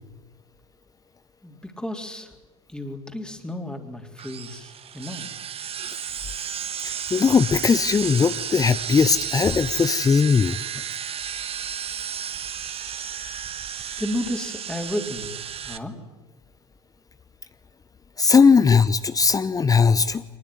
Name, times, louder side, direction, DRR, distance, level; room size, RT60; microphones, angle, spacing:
voice 1, 1.4-2.3 2.7-5.3 14.0-15.3 15.6-16.0, left 1 dB, 5° left, 3 dB, 3.6 m, -32 dB
sound 1, 4.2-15.8, right 8 dB, 35° right, 1.5 m, -33 dB
voice 2, 6.8-10.6 18.2-20.2, left 5 dB, 20° left, 14 dB, 0.9 m, -19 dB
24.0 x 20.0 x 9.5 m, 1.1 s
figure-of-eight pair, 70°, 18 cm